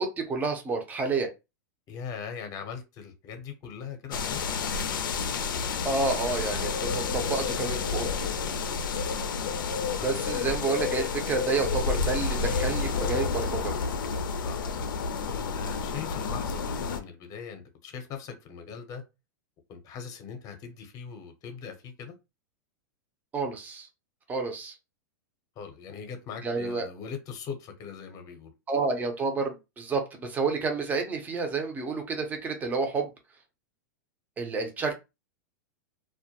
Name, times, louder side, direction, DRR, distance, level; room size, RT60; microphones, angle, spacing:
voice 1, 0.0-1.3 5.8-8.3 10.0-13.7 23.3-23.9 24.3-24.8 26.4-26.9 28.7-33.1 34.4-34.9, right 4 dB, 15° right, 0.6 m, -29 dB
voice 2, 1.9-4.4 4.7-4.9 9.0-9.2 10.0-10.2 14.4-14.7 15.3-19.0 19.7-22.1 25.6-28.5, left 7 dB, 35° left, 0.7 m, -40 dB
sound 1, 4.1-17.0, left 5 dB, 90° left, 0.4 m, -30 dB
2.2 x 2.1 x 2.8 m
hypercardioid pair, 130°, 11 cm